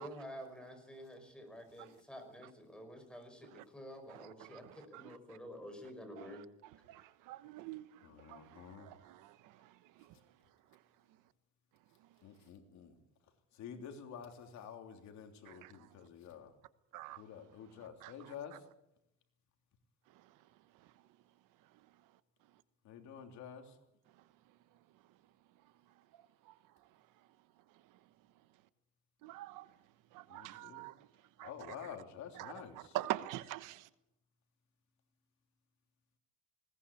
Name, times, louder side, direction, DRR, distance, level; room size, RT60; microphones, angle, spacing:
voice 1, 0.0-6.5, equal, 5° left, 5.4 m, -50 dB
voice 2, 4.1-5.4 6.2-10.1 15.5-15.7 16.9-17.2 18.0-18.6 26.5-26.6 29.2-29.7 30.1-31.1 31.4-32.0 32.3-33.9, right 15 dB, 80° right, 1.2 m, -46 dB
voice 3, 8.0-8.9 12.2-12.9 13.6-16.5 17.2-18.5 22.8-23.6 30.3-30.8 31.4-32.9, left 8 dB, 65° left, 3.2 m, -49 dB
20.5 x 18.5 x 8.5 m
cardioid pair, 150°, 31 cm